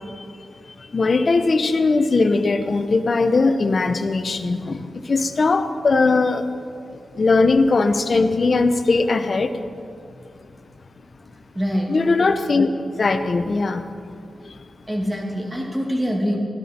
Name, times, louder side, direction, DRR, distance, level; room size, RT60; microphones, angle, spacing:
voice 1, 0.9-6.4 7.2-9.5 11.9-12.7 13.0-13.8, left 3 dB, 50° left, 8 dB, 0.8 m, -19 dB
voice 2, 11.5-11.9 14.9-16.4, equal, 15° right, 0 dB, 2.3 m, -24 dB
15.5 x 12.5 x 4.4 m, 2.4 s
wide cardioid pair, 100°, 0 cm